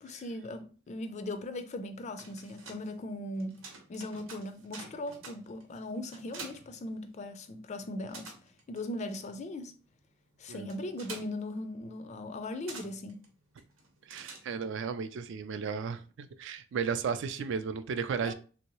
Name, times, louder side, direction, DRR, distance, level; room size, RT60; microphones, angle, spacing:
voice 1, 0.0-8.3 8.7-9.7 10.4-13.3 18.2-18.3, left 1 dB, 35° left, 0.3 m, -39 dB
sound 1, 1.9-7.5 7.8-14.9, right 4 dB, 90° right, 0.9 m, -50 dB
voice 2, 14.1-18.3, right 6 dB, 65° right, 0.3 m, -34 dB
3.0 x 2.7 x 2.9 m
head